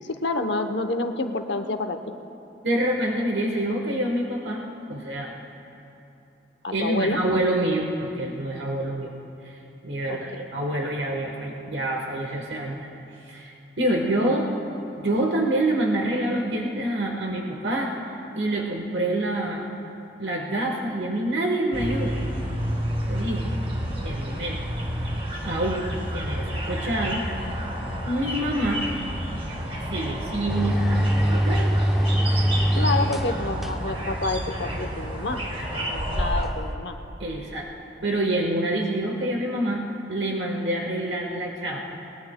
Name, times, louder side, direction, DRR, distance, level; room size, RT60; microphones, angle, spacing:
voice 1, 0.0-2.1 6.6-7.2 10.1-10.5 32.7-37.0, left 2 dB, 80° left, 7 dB, 0.8 m, -28 dB
voice 2, 2.6-5.3 6.7-9.1 9.4-12.9 13.3-14.5 15.0-17.9 18.3-19.7 20.2-22.2 23.1-23.5 24.0-24.6 25.4-25.9 26.1-27.2 28.0-28.8 29.9-31.7 37.2-37.7 38.0-42.0, right 1 dB, 75° right, 0 dB, 1.2 m, -27 dB
sound 1, 21.7-36.5, equal, 35° right, 2.0 m, -30 dB
sound 2, 30.5-36.8, equal, ahead, 0.6 m, -24 dB
23.0 x 20.0 x 2.2 m, 3.0 s
head